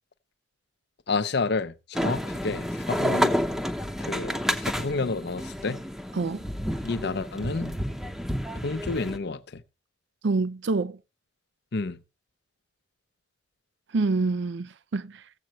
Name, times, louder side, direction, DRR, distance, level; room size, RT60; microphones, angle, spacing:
voice 1, 1.1-3.4 4.0-5.8 6.8-7.8 8.6-9.6 11.7-12.0, left 3 dB, 60° left, 0.7 m, -30 dB
sound 1, 1.9-9.2, equal, ahead, 0.7 m, -30 dB
voice 2, 10.2-11.0 13.9-15.2, right 3 dB, 65° right, 0.5 m, -26 dB
16.0 x 7.8 x 2.9 m
head